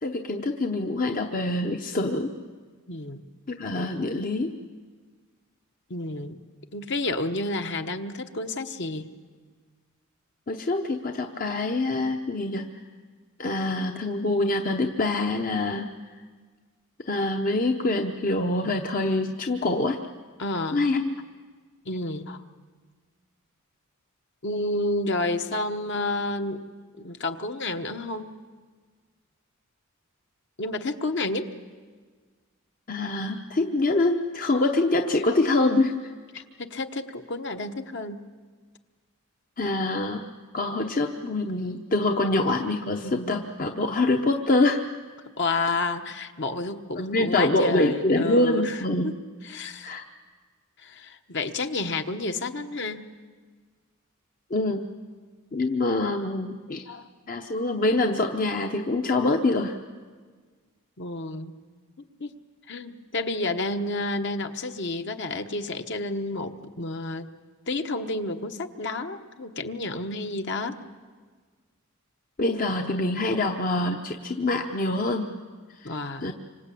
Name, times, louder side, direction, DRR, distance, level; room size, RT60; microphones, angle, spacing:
voice 1, 0.0-2.3 3.5-4.5 10.5-12.7 13.4-15.9 17.1-20.0 20.7-21.2 32.9-36.1 39.6-40.2 40.5-44.8 47.1-49.1 49.8-50.0 54.5-54.9 55.5-56.9 57.3-59.8 72.4-75.3 75.8-75.9 76.2-76.3, left 2 dB, 40° left, 5 dB, 0.9 m, -25 dB
voice 2, 2.9-3.2 5.9-6.4 6.7-9.1 18.6-18.9 20.4-20.9 21.8-22.4 24.4-26.6 27.0-28.3 30.6-31.5 36.3-38.2 43.0-43.4 45.4-49.2 49.4-50.0 50.8-53.0 56.0-56.2 56.7-57.1 61.0-61.5 62.2-62.3 62.7-67.3 67.7-70.8 75.8-76.3, left 2 dB, 55° left, 6 dB, 1.3 m, -30 dB
26.5 x 25.0 x 8.5 m, 1.5 s
head